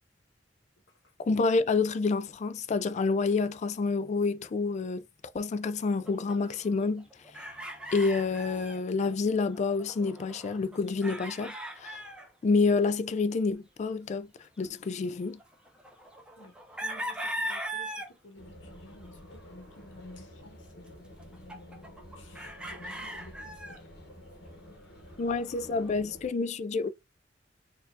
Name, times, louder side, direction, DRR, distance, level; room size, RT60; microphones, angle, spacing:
voice 1, 1.2-5.0 5.3-7.1 7.9-12.0 12.4-14.3 14.6-15.4 25.2-26.9, left 4 dB, 40° left, 0.3 m, -28 dB
sound 1, 6.0-8.8 9.1-9.2 9.4-12.3 13.2-13.3 15.3-18.1 18.9-19.6 20.9-21.0 21.2-23.8 25.3-25.9, right 1 dB, 5° right, 0.6 m, -39 dB
voice 2, 16.3-23.8, left 1 dB, 85° left, 1.1 m, -53 dB
sound 2, 18.4-26.3, equal, 60° left, 1.1 m, -50 dB
4.2 x 2.6 x 2.4 m
head